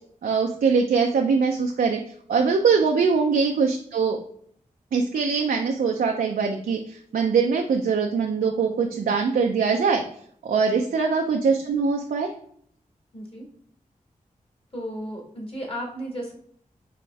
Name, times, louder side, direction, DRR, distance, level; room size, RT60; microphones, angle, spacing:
voice 1, 0.2-2.0 2.3-4.2 4.9-10.0 10.4-12.3, right 5 dB, 85° right, 2 dB, 0.4 m, -22 dB
voice 2, 13.1-13.4 14.7-16.3, equal, 40° left, 0 dB, 1.8 m, -34 dB
4.9 x 3.0 x 3.3 m, 0.63 s
cardioid pair, 55°, 15 cm